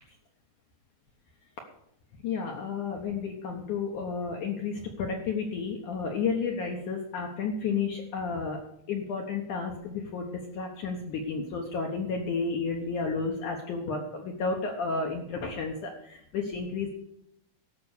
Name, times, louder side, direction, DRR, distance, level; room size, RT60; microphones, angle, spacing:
voice 1, 2.2-8.6 8.9-16.9, left 5 dB, 65° left, 1 dB, 2.2 m, -32 dB
14.5 x 6.0 x 6.7 m, 0.74 s
omnidirectional pair, 4.9 m